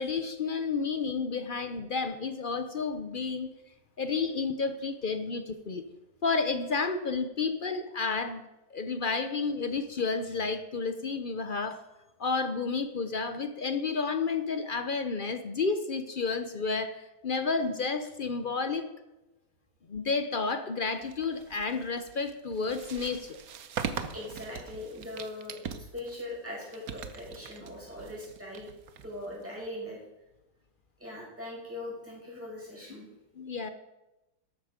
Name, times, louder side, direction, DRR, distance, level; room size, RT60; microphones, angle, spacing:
voice 1, 0.0-3.5 4.0-5.9 6.2-8.4 8.7-11.8 12.2-18.9 19.9-23.4 33.4-33.7, left 4 dB, 55° left, 9 dB, 0.5 m, -31 dB
sound 1, 21.0-29.7, right 7 dB, 60° right, 1.3 m, -41 dB
voice 2, 24.1-28.7 29.0-30.0 31.0-33.1, left 1 dB, 5° right, -5 dB, 6.2 m, -41 dB
14.0 x 12.0 x 5.1 m, 0.99 s
omnidirectional pair, 1.9 m